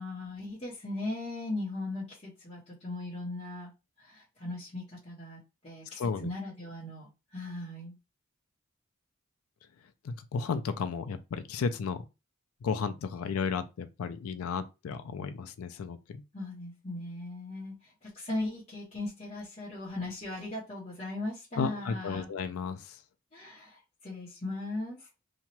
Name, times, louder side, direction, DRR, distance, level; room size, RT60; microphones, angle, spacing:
voice 1, 0.0-3.7 4.0-7.9 16.3-22.3 23.3-25.1, left 2 dB, 30° left, 0.9 m, -38 dB
voice 2, 6.0-6.3 10.0-12.0 12.6-16.2 21.6-23.0, left 5 dB, 85° left, 0.4 m, -33 dB
2.9 x 2.2 x 2.9 m
head